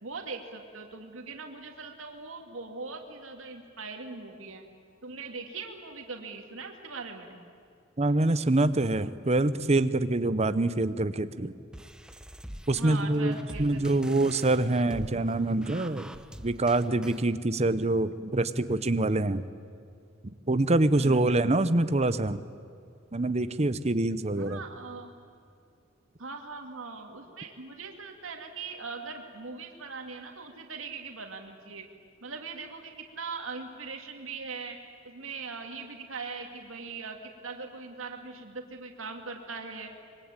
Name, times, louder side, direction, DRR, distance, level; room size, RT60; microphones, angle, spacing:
voice 1, 0.0-4.6 5.0-7.3 12.8-14.2 20.9-21.4 24.4-25.1 26.2-31.9 32.2-34.8 35.0-39.9, right 4 dB, 90° right, 3 dB, 2.4 m, -40 dB
voice 2, 8.0-11.5 12.7-16.1 16.4-19.4 20.5-22.4 23.1-24.6, right 2 dB, 35° right, 13 dB, 0.9 m, -25 dB
sound 1, 11.7-17.3, equal, 5° right, 0.8 m, -45 dB
25.5 x 22.5 x 9.1 m, 2.4 s
head